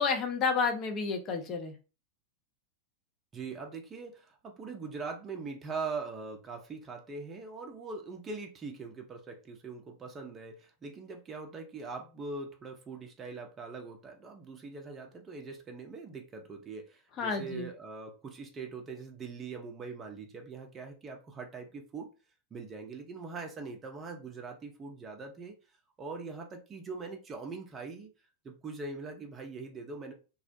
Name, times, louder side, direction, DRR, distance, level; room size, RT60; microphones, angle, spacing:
voice 1, 0.0-1.7 17.2-17.7, left 5 dB, 30° left, 0.6 m, -30 dB
voice 2, 3.3-22.1 22.5-25.5 26.0-28.1 28.4-30.1, right 4 dB, 20° right, 0.5 m, -42 dB
2.3 x 2.0 x 2.7 m
figure-of-eight pair, 90°, 0 cm